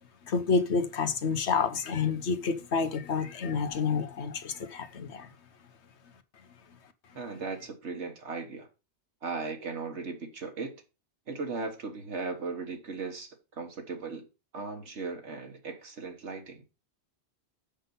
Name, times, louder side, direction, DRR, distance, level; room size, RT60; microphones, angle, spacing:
voice 1, 0.2-5.3, left 5 dB, 80° left, 1.3 m, -29 dB
voice 2, 7.1-8.7 9.2-10.7 11.3-14.3 14.5-16.6, right 4 dB, 85° right, 1.8 m, -37 dB
7.3 x 5.7 x 5.4 m
omnidirectional pair, 1.1 m